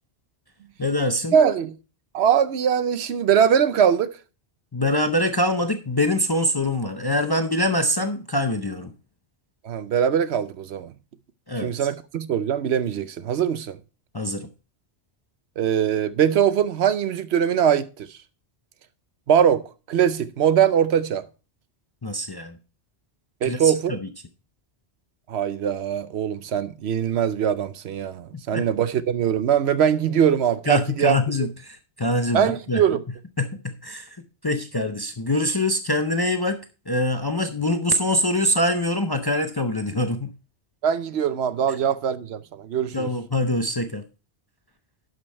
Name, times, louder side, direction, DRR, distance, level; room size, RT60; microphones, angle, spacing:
voice 1, 0.8-1.3 4.7-8.9 11.5-11.7 14.1-14.5 22.0-22.6 23.4-24.0 28.5-28.7 30.7-32.8 33.4-34.2 34.4-40.3 42.9-44.0, left 1 dB, 30° left, 0.5 m, -24 dB
voice 2, 1.3-1.7 2.1-4.1 9.6-10.9 11.6-13.8 15.6-18.1 19.3-21.2 23.4-23.9 25.3-31.2 32.3-33.0 40.8-43.1, right 8 dB, 75° right, 0.9 m, -22 dB
11.5 x 5.3 x 4.2 m
omnidirectional pair, 1.1 m